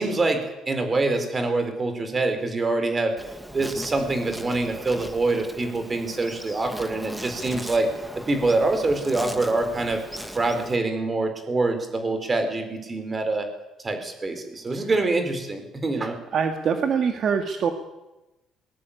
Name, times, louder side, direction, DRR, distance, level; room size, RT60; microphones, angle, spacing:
voice 1, 0.0-3.1 3.5-7.9 8.3-10.0 10.3-13.5 13.8-16.2, right 2 dB, 25° right, 8 dB, 4.4 m, -25 dB
Insect, 3.2-10.8, equal, 5° right, 1.8 m, -38 dB
voice 2, 16.3-17.7, right 6 dB, 50° right, 5 dB, 2.3 m, -24 dB
21.5 x 21.0 x 8.8 m, 1.0 s
cardioid pair, 135°, 0 cm